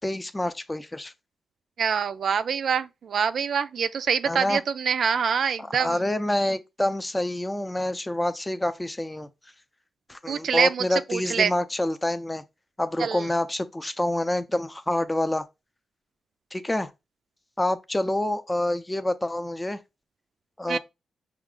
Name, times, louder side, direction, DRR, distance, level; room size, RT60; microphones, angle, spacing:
voice 1, 0.0-1.1 4.3-4.6 5.6-9.3 10.1-12.4 12.8-15.5 16.5-16.9 17.6-19.8 20.6-20.8, left 1 dB, 15° left, 0.5 m, -27 dB
voice 2, 1.8-6.0 10.3-11.5 13.0-13.3 20.7-20.8, right 6 dB, 65° right, 0.4 m, -25 dB
5.7 x 2.4 x 3.7 m
cardioid pair, 95°, 0 cm